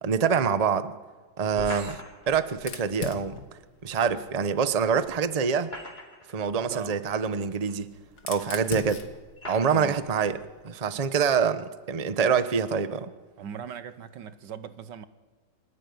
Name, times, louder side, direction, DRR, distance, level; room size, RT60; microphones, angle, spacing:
voice 1, 0.0-1.0 1.4-1.9 2.3-3.4 3.8-5.7 6.3-7.9 8.3-9.0 9.5-10.4 10.6-13.1, right 6 dB, 30° right, 0.9 m, -25 dB
voice 2, 1.5-2.0 6.7-7.0 9.7-10.1 13.4-15.1, right 8 dB, 80° right, 1.7 m, -39 dB
sound 1, 1.6-2.4 4.1-4.2 5.4-6.4 7.2-7.3 8.3-8.4 9.4-9.9, left 1 dB, 35° left, 4.2 m, -40 dB
Fire, 2.5-5.3 6.5-10.7, left 5 dB, 65° left, 2.1 m, -42 dB
25.0 x 15.5 x 9.5 m
omnidirectional pair, 1.9 m